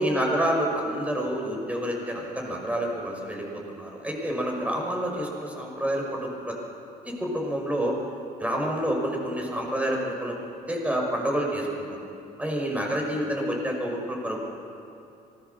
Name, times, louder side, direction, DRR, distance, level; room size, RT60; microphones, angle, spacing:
voice 1, 0.0-6.5 7.0-8.0 8.4-10.4 10.7-12.0 12.4-14.4, equal, 10° right, 0 dB, 6.0 m, -28 dB
26.0 x 20.0 x 7.1 m, 2.7 s
cardioid pair, 110°, 17 cm